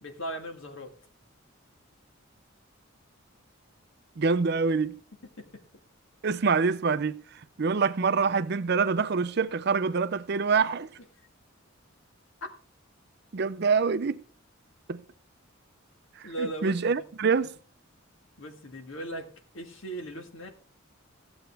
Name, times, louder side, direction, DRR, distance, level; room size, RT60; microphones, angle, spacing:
voice 1, 0.0-0.9 5.4-5.5 16.2-17.1 18.4-20.5, right 1 dB, 70° left, 1.7 m, -38 dB
voice 2, 4.2-5.0 6.2-7.2 7.6-10.9 13.3-14.2 14.9-15.0 16.4-17.5, right 5 dB, 50° right, 0.5 m, -25 dB
14.5 x 7.9 x 3.4 m
head